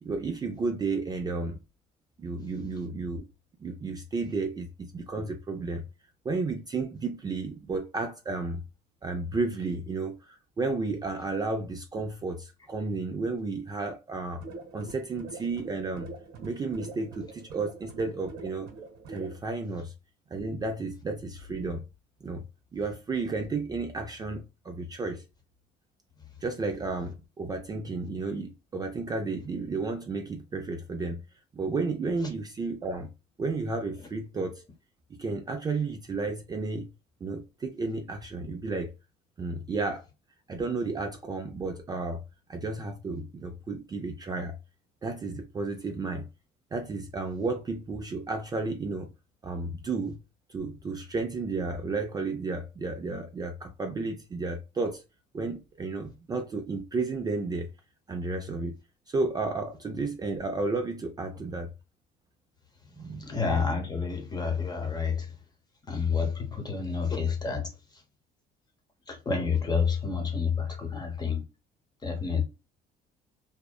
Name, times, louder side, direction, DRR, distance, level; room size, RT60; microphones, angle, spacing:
voice 1, 0.0-1.6 2.2-3.3 3.6-5.8 6.2-8.6 9.0-14.4 14.7-16.1 16.4-18.7 19.1-19.9 20.3-21.8 22.2-22.4 22.7-25.2 26.4-31.2 31.5-33.1 33.4-34.6 35.1-36.9 37.2-38.9 39.4-40.0 40.5-42.2 42.5-44.6 45.0-46.3 46.7-49.1 49.4-50.2 50.5-55.0 55.3-57.7 58.1-58.8 59.1-61.7 63.0-63.3, right 3 dB, 25° right, 0.3 m, -32 dB
sound 1, 14.3-19.4, right 3 dB, 80° right, 0.9 m, -44 dB
voice 2, 63.1-65.3 65.9-68.0 69.1-71.4 72.0-72.4, left 5 dB, 25° left, 0.8 m, -29 dB
2.7 x 2.1 x 2.2 m
cardioid pair, 110°, 17 cm